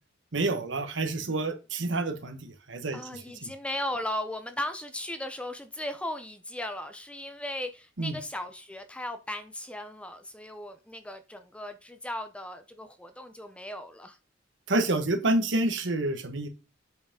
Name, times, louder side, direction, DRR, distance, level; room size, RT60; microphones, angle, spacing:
voice 1, 0.3-3.5 8.0-8.2 14.7-16.5, right 2 dB, 65° right, 7 dB, 1.3 m, -28 dB
voice 2, 2.9-14.2, left 1 dB, 5° left, 8 dB, 0.6 m, -37 dB
8.0 x 4.9 x 3.7 m, 0.30 s
head